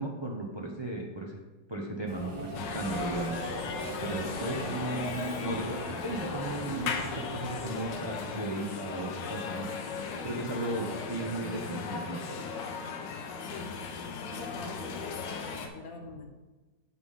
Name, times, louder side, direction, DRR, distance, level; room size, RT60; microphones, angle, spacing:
voice 1, 0.0-1.4 1.7-3.4 4.0-12.4, right 2 dB, 45° right, -1 dB, 0.3 m, -36 dB
Subway metro underground, 2.1-8.3, right 1 dB, 15° right, 1.0 m, -40 dB
sound 1, 2.5-15.7, left 5 dB, 75° left, 1.4 m, -37 dB
voice 2, 4.5-4.9 13.4-16.3, left 3 dB, 55° left, 3 dB, 1.3 m, -44 dB
8.3 x 5.9 x 3.7 m, 1.2 s
omnidirectional pair, 2.0 m